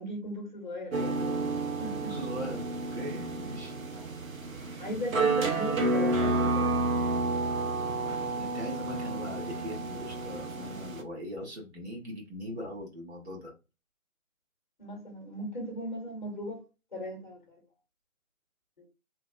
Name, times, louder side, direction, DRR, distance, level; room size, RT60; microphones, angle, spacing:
voice 1, 0.0-1.5 1.8-2.2 3.9-4.1 4.8-6.9 14.8-16.6 16.9-17.6 18.8-18.9, equal, 35° left, 0.8 m, -37 dB
sound 1, 0.9-11.0, right 2 dB, 75° right, 0.8 m, -30 dB
voice 2, 1.9-3.7 8.4-13.5, equal, 50° right, 1.3 m, -40 dB
3.1 x 2.2 x 2.5 m
figure-of-eight pair, 160°, 42 cm